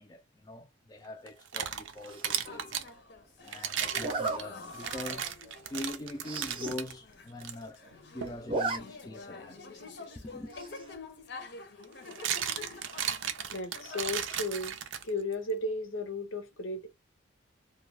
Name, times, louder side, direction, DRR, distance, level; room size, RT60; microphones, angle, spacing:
voice 1, 0.0-2.8 3.4-5.3 5.6-7.8 8.1-9.6 10.2-10.5, left 1 dB, 20° left, 0.3 m, -43 dB
sound 1, 1.3-2.9 3.5-6.9 7.4-7.5 8.2-8.4 10.5-10.6 11.8-15.3, right 9 dB, 70° right, 0.4 m, -35 dB
Zipper (clothing), 2.1-2.5 4.0-4.4 5.0-5.1 5.5-5.6 5.8-5.9 6.2-6.8 7.1-7.2 7.4-8.0 8.3-8.8 9.1-9.2 10.5-10.9, right 3 dB, 25° right, 0.6 m, -34 dB
sound 2, 2.4-14.3, left 3 dB, 55° left, 0.6 m, -48 dB
voice 2, 13.5-14.8 15.0-16.9, left 1 dB, 85° left, 0.8 m, -34 dB
2.3 x 2.3 x 3.2 m
head